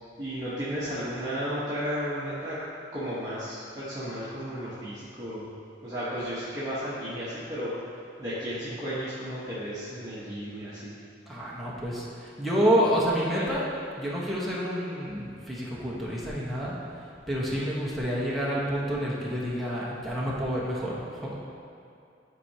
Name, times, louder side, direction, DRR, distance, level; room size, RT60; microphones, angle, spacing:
voice 1, 0.2-2.6 2.9-5.5 5.8-7.7 8.2-10.9 13.3-13.4, equal, 20° right, -12 dB, 1.2 m, -33 dB
voice 2, 11.3-13.7 14.0-21.4, equal, ahead, -7 dB, 1.1 m, -28 dB
10.5 x 4.7 x 2.9 m, 2.5 s
head